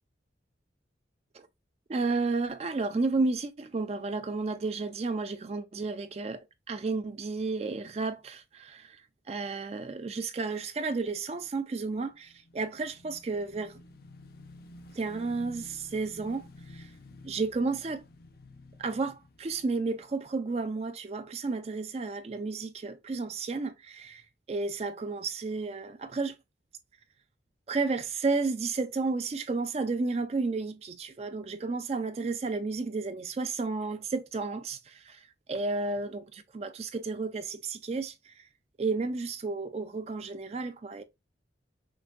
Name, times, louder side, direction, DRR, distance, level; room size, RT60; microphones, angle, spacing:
voice 1, 1.9-9.0 9.3-13.7 15.0-16.4 16.7-16.9 17.2-18.0 18.8-24.2 24.5-26.3 27.7-35.2 35.5-38.1 38.8-41.0, right 3 dB, 35° right, 0.3 m, -32 dB
Motorcycle / Engine, 12.1-20.6, left 2 dB, 55° left, 0.5 m, -52 dB
5.8 x 2.6 x 2.4 m
head